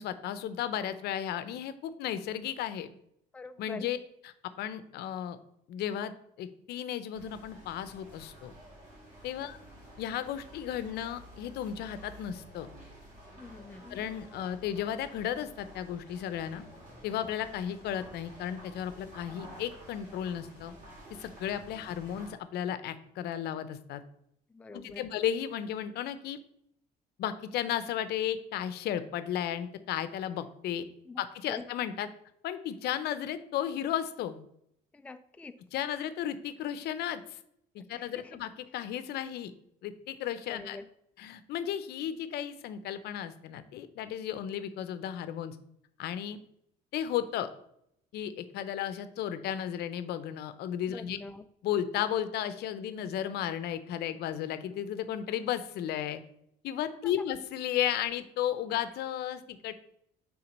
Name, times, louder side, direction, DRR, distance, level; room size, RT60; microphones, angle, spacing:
voice 1, 0.0-2.9 3.6-4.0 4.2-5.4 5.7-6.1 6.4-8.5 9.2-9.6 10.0-12.7 13.9-16.6 17.0-20.7 21.2-24.0 24.7-26.4 27.2-30.8 31.2-32.1 32.4-34.4 35.7-37.4 37.7-39.5 39.8-40.8 41.2-45.6 46.0-46.4 46.9-47.5 48.1-51.2 51.6-56.2 56.6-59.7, left 10 dB, 75° left, 12 dB, 0.6 m, -34 dB
voice 2, 3.3-3.9 13.4-14.0 24.5-25.0 31.1-31.2 31.5-31.6 34.9-35.6 37.9-38.3 40.5-40.9 50.9-51.4, left 3 dB, 10° left, 9 dB, 0.3 m, -45 dB
sound 1, 7.1-22.3, equal, 45° right, 2.6 m, -51 dB
5.7 x 3.7 x 5.3 m, 0.73 s
cardioid pair, 110°, 17 cm